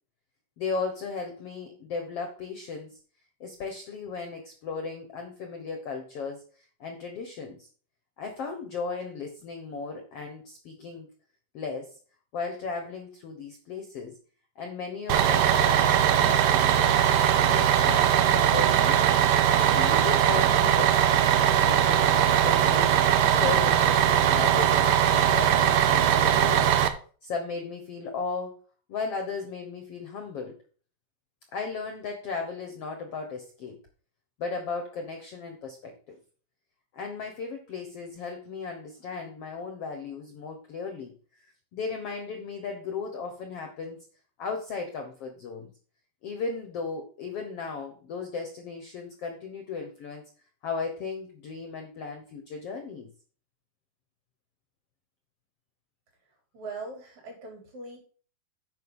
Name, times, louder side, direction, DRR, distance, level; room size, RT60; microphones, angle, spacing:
voice 1, 0.6-3.0 3.4-7.7 8.2-11.1 11.5-12.0 12.3-14.1 14.5-19.1 19.5-26.6 27.2-28.6 28.9-30.5 31.5-33.8 34.4-36.2 36.9-41.5 41.7-44.0 44.4-45.7 46.2-50.3 50.6-53.1, left 4 dB, 60° left, 5 dB, 1.6 m, -36 dB
Bus, 15.1-26.9, right 9 dB, 75° right, 1.7 m, -21 dB
voice 2, 56.5-58.0, right 3 dB, 50° right, 1 dB, 4.6 m, -40 dB
9.3 x 5.7 x 5.4 m, 0.42 s
omnidirectional pair, 4.1 m